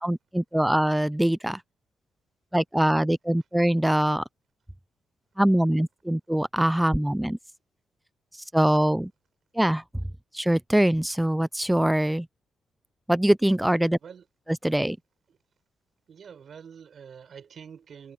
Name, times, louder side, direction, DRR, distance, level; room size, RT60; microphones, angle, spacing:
voice 1, 0.0-1.6 2.5-4.2 5.4-7.4 8.5-9.1 9.6-9.8 10.3-12.3 13.1-14.0 14.6-15.0, right 1 dB, 5° right, 0.4 m, -23 dB
voice 2, 16.1-18.1, right 7 dB, 60° right, 6.3 m, -46 dB
cardioid pair, 75°, 0 cm